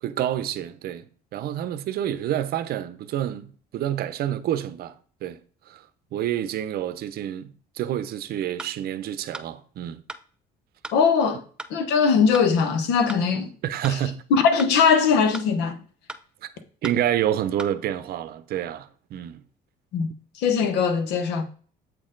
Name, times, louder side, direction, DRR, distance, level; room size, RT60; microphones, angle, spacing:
voice 1, 0.0-1.0 1.3-4.9 5.2-5.4 5.7-5.8 6.1-10.0 13.6-14.2 16.4-16.5 16.8-19.4, right 11 dB, 65° right, 0.6 m, -28 dB
sound 1, 8.6-8.7 9.3-9.5 10.1-10.2 10.8-11.0 11.6-11.7 12.3-12.5 13.1-13.2 13.8-14.0 14.6-14.7 15.3-15.5 16.1-16.2 16.8-17.0 17.6-17.7, right 2 dB, 5° right, 0.5 m, -37 dB
voice 2, 10.9-11.4 11.7-13.5 14.3-15.8 19.9-20.1 20.4-21.4, left 6 dB, 90° left, 1.0 m, -20 dB
7.9 x 4.3 x 3.8 m
cardioid pair, 110°, 17 cm